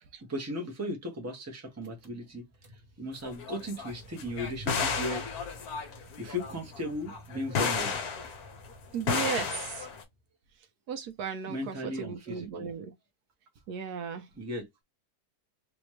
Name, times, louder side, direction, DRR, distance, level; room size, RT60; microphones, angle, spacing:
voice 1, 0.3-2.4 3.0-5.3 6.2-7.9 11.5-12.7 14.4-14.7, left 1 dB, 10° right, 0.8 m, -36 dB
Car / Engine, 1.8-10.2, right 1 dB, 40° right, 1.0 m, -49 dB
sound 1, 3.2-3.9 4.2-8.7 9.0-10.0, left 6 dB, 65° left, 1.3 m, -33 dB
voice 2, 8.9-9.9 10.9-12.9 13.7-14.3, right 7 dB, 70° right, 1.2 m, -36 dB
3.3 x 3.1 x 3.1 m
omnidirectional pair, 1.8 m